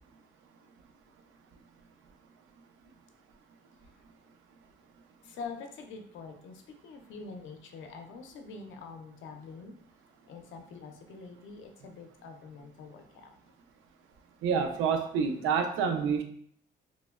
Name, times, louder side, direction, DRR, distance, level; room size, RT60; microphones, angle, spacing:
voice 1, 5.2-9.7 10.3-13.3, left 4 dB, 75° left, 4 dB, 0.5 m, -45 dB
voice 2, 14.4-16.2, right 6 dB, 85° right, 5 dB, 0.4 m, -28 dB
3.1 x 2.1 x 2.3 m, 0.63 s
cardioid pair, 90°, 20 cm